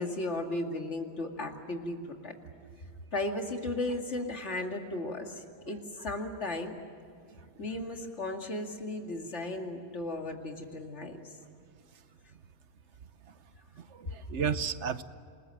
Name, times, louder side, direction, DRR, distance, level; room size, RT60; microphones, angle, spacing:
voice 1, 0.0-2.4 3.1-6.7 7.6-11.2, left 2 dB, 90° left, 3 dB, 2.6 m, -35 dB
voice 2, 7.3-7.6 11.9-12.0 13.2-13.4 13.7-15.0, right 7 dB, 85° right, 13 dB, 1.2 m, -35 dB
28.0 x 20.0 x 7.6 m, 2.4 s
omnidirectional pair, 1.2 m